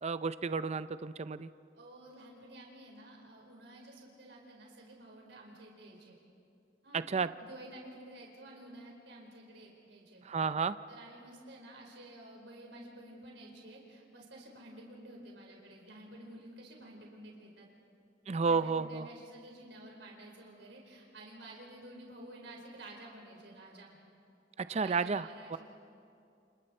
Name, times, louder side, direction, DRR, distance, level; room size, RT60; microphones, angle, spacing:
voice 1, 0.0-1.5 6.9-7.3 10.2-10.8 18.3-19.1 24.6-25.6, right 5 dB, 40° right, 14 dB, 0.5 m, -32 dB
voice 2, 1.7-6.2 6.8-7.0 7.4-10.2 10.9-17.7 18.4-24.0 24.8-25.6, right 1 dB, 75° right, -1 dB, 4.5 m, -51 dB
29.0 x 28.5 x 4.4 m, 2.6 s
head